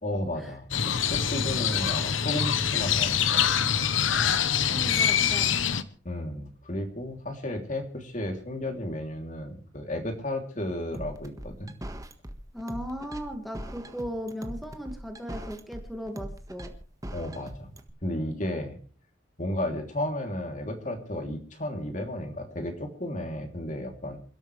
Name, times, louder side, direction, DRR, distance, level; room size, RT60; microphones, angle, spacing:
voice 1, 0.0-3.5 6.0-11.7 17.1-17.7 18.0-18.8 19.4-24.2, left 1 dB, 40° left, 4 dB, 3.1 m, -33 dB
Crow, 0.7-5.8, left 8 dB, 85° left, 1.1 m, -25 dB
voice 2, 4.7-5.6 12.5-16.7, equal, ahead, 3 dB, 1.9 m, -37 dB
sound 1, 10.9-17.9, equal, 20° right, 1.5 m, -40 dB
28.0 x 12.5 x 3.3 m, 0.40 s
head